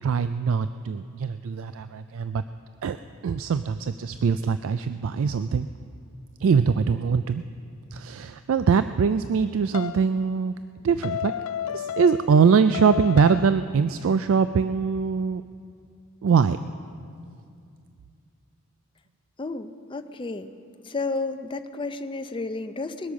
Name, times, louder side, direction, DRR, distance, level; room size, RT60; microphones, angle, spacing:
voice 1, 0.0-2.4 2.8-3.0 3.2-5.7 6.4-7.4 7.9-10.5 10.8-11.3 11.7-15.4 16.2-16.6, right 6 dB, 65° right, 11 dB, 0.3 m, -22 dB
sound 1, 9.7-10.1 11.0-12.4 12.7-13.6, left 10 dB, 85° left, 0.3 m, -31 dB
voice 2, 19.4-20.5 20.9-23.1, left 3 dB, 25° left, 9 dB, 0.5 m, -32 dB
21.0 x 8.3 x 6.2 m, 2.4 s
head